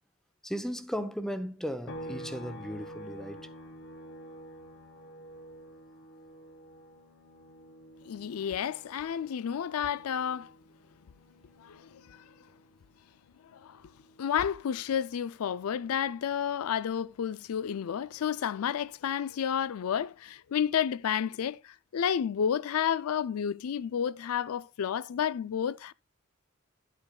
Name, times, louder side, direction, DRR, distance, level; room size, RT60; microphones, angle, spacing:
voice 1, 0.4-3.5, equal, ahead, 0.7 m, -36 dB
sound 1, 1.9-15.4 15.8-18.0, equal, 60° left, 1.0 m, -50 dB
voice 2, 8.0-10.5 11.6-12.2 13.5-13.8 14.2-25.9, left 8 dB, 85° left, 0.4 m, -31 dB
11.5 x 8.3 x 2.2 m
head